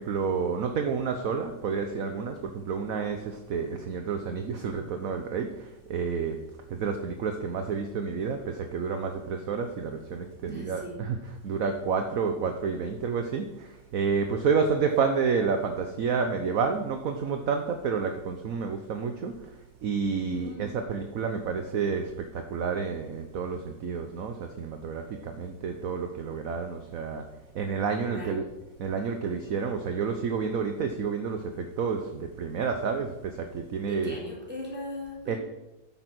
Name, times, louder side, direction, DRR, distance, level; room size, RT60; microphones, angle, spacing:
voice 1, 0.0-6.4 6.7-19.3 19.8-27.2 27.5-28.5 28.8-34.2 35.3-35.4, right 5 dB, 55° right, 6 dB, 1.1 m, -30 dB
voice 2, 10.4-11.0 20.3-20.9 28.1-28.4 33.8-35.4, left 1 dB, 5° right, -4 dB, 3.5 m, -39 dB
9.7 x 7.9 x 6.1 m, 1.0 s
omnidirectional pair, 2.0 m